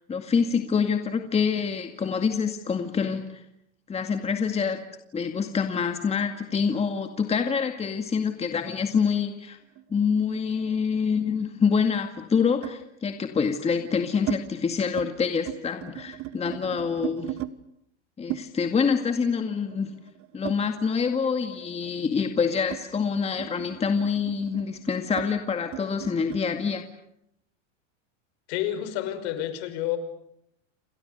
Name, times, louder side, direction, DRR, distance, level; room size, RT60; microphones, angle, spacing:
voice 1, 0.1-3.4 3.9-4.8 5.1-9.6 9.9-17.3 18.2-19.9 20.3-26.9, left 6 dB, 15° left, 6 dB, 2.1 m, -26 dB
sound 1, 9.8-11.3 12.6-12.9 13.6-14.4 14.8-15.1 15.4-17.5 18.3-21.2 21.5-26.5, right 15 dB, 35° right, 1.3 m, -38 dB
voice 2, 28.5-30.0, left 12 dB, 60° left, 10 dB, 5.8 m, -29 dB
29.0 x 27.0 x 6.7 m, 0.76 s
supercardioid pair, 130°, 36 cm